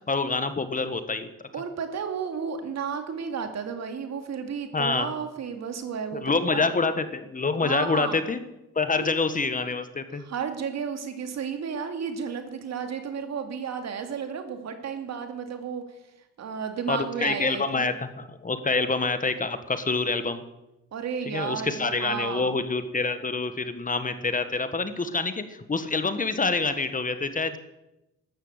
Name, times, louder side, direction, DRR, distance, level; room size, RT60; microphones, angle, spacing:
voice 1, 0.1-1.3 4.7-5.1 6.1-8.4 8.7-10.2 16.9-20.4 21.2-27.6, left 4 dB, 25° left, 11 dB, 1.4 m, -26 dB
voice 2, 1.5-6.7 7.6-8.1 9.0-9.1 10.2-15.8 16.4-17.9 20.9-22.5, right 6 dB, 60° right, 7 dB, 2.4 m, -33 dB
13.5 x 12.0 x 8.1 m, 0.94 s
cardioid pair, 90°, 30 cm